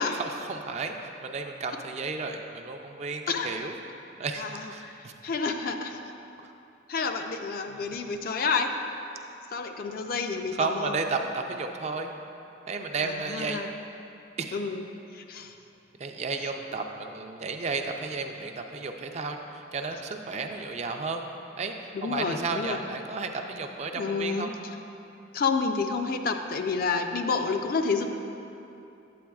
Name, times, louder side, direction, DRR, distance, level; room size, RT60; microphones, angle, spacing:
voice 1, 0.1-3.8 4.2-4.4 4.7-5.1 6.4-6.5 7.7-7.9 10.5-12.1 12.7-13.7 14.4-14.6 16.0-21.2 21.6-24.5, right 4 dB, 35° right, 4 dB, 0.3 m, -33 dB
voice 2, 3.3-3.7 4.4-6.0 6.9-8.8 9.5-11.0 13.0-13.7 14.5-14.9 15.1-15.5 21.9-22.8 24.0-24.5 25.3-28.1, left 4 dB, 45° left, 5 dB, 0.3 m, -29 dB
8.5 x 8.4 x 2.3 m, 2.8 s
head